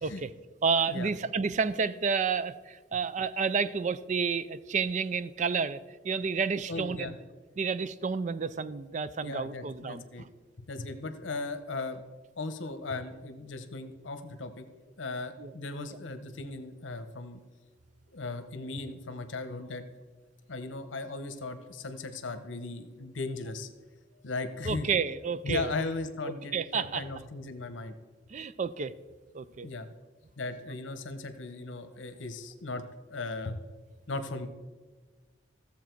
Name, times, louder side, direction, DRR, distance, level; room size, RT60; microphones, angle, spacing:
voice 1, 0.0-0.3 0.6-7.1 7.6-10.3 15.4-15.5 24.7-25.7 26.2-27.1 28.3-28.9 29.3-29.7, right 5 dB, 40° right, 15 dB, 0.4 m, -30 dB
voice 2, 6.7-7.1 9.2-10.2 10.7-12.0 12.4-14.7 15.0-17.4 18.1-19.8 20.5-23.7 24.2-24.9 25.4-27.9 29.6-29.9 30.4-33.6 34.1-34.5, left 3 dB, 80° left, 9 dB, 0.9 m, -37 dB
14.5 x 7.2 x 4.6 m, 1.3 s
head